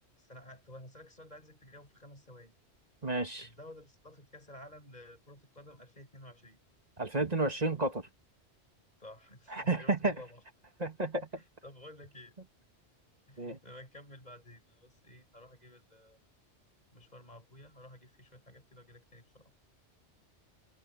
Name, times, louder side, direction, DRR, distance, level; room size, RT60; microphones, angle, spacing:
voice 1, 0.2-2.5 3.4-6.6 9.0-10.4 11.4-12.3 13.3-16.2 16.9-19.8, left 1 dB, 35° left, 8.0 m, -53 dB
voice 2, 3.0-3.5 7.0-8.1 9.5-10.2 10.8-11.4 13.4-13.6, right 2 dB, 35° right, 2.2 m, -31 dB
omnidirectional pair, 1.2 m